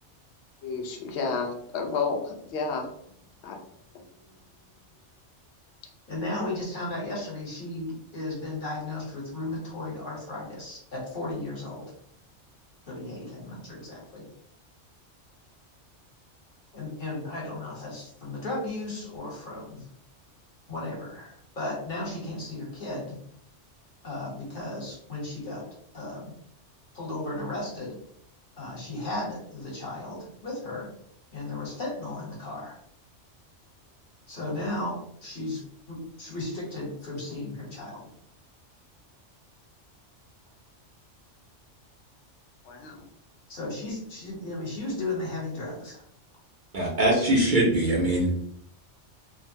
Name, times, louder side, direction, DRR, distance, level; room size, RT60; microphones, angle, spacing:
voice 1, 0.6-2.9 3.4-3.6 42.6-43.1, left 4 dB, 70° left, 3 dB, 0.9 m, -31 dB
voice 2, 6.1-11.8 12.9-14.2 16.7-19.8 20.7-23.2 24.0-25.6 25.9-26.3 26.9-27.9 28.6-30.9 31.3-32.7 34.3-35.6 35.9-38.1 43.5-46.0, left 2 dB, 45° left, -4 dB, 1.2 m, -35 dB
voice 3, 46.7-48.3, right 1 dB, 50° right, -3 dB, 0.7 m, -22 dB
3.1 x 2.1 x 2.6 m, 0.67 s
omnidirectional pair, 1.2 m